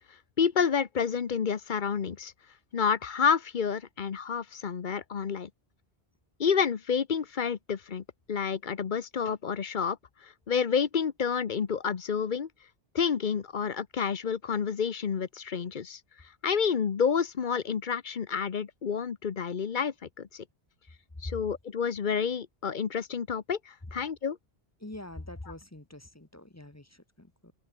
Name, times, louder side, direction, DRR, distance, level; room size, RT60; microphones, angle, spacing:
voice 1, 0.4-2.3 2.7-5.5 6.4-10.0 10.2-12.5 12.9-16.0 16.4-20.4 21.2-24.4, left 6 dB, 50° left, 1.0 m, -29 dB
voice 2, 24.8-27.5, left 1 dB, 15° left, 1.2 m, -44 dB
omnidirectional pair, 1.1 m